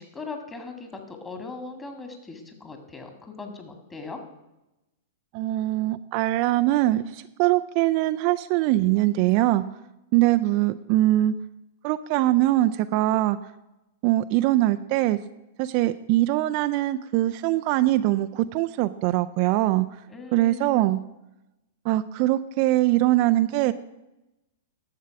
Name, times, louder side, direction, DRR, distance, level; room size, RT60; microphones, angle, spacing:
voice 1, 0.0-4.2 20.1-20.8, left 3 dB, 15° left, 5 dB, 2.0 m, -39 dB
voice 2, 5.3-9.6 10.1-11.3 11.8-13.4 14.0-15.2 15.6-19.9 20.3-21.0 21.8-23.7, right 16 dB, 45° right, 11 dB, 0.4 m, -22 dB
11.0 x 7.4 x 5.9 m, 0.96 s
figure-of-eight pair, 100°, 0 cm